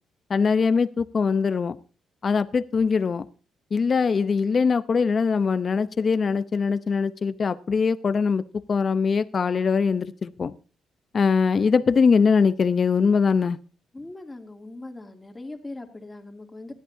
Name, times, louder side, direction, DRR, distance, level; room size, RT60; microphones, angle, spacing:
voice 1, 0.3-1.8 2.2-3.3 3.7-8.4 8.7-10.5 11.1-13.6, left 5 dB, 40° left, 14 dB, 0.7 m, -22 dB
voice 2, 13.9-16.7, left 2 dB, 15° left, 4 dB, 2.6 m, -40 dB
19.5 x 13.0 x 2.7 m, 0.37 s
cardioid pair, 90°, 0 cm